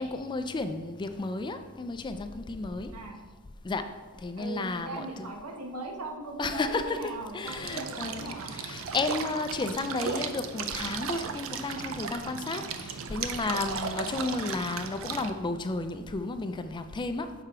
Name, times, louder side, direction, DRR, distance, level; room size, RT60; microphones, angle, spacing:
voice 1, 0.0-2.9 3.6-3.9 4.2-5.1 6.4-7.0 7.3-17.3, left 3 dB, 20° left, 9 dB, 0.3 m, -33 dB
voice 2, 4.4-8.5 12.6-12.8, right 2 dB, 85° right, 1 dB, 1.1 m, -39 dB
sound 1, 7.5-15.3, right 6 dB, 65° right, 0.5 m, -36 dB
6.6 x 4.4 x 4.8 m, 1.5 s
head